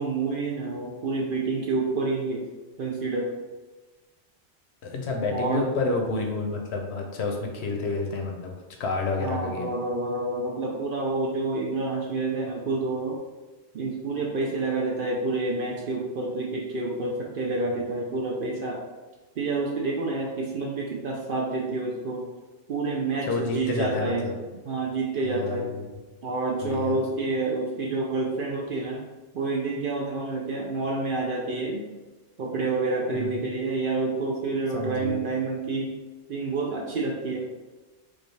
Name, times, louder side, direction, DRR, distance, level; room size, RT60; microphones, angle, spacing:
voice 1, 0.0-2.5 2.8-3.3 5.3-5.6 9.2-13.2 13.7-18.8 19.4-22.3 22.7-24.3 24.7-25.7 26.2-29.1 29.3-31.8 32.4-35.9 36.3-37.5, right 3 dB, 60° right, -1 dB, 0.6 m, -28 dB
voice 2, 4.8-8.5 8.8-9.7 23.2-24.4 25.2-25.9 26.6-27.0 33.1-33.5 34.7-35.2, left 3 dB, 65° left, 2 dB, 0.9 m, -29 dB
4.8 x 2.3 x 3.2 m, 1.2 s
omnidirectional pair, 1.2 m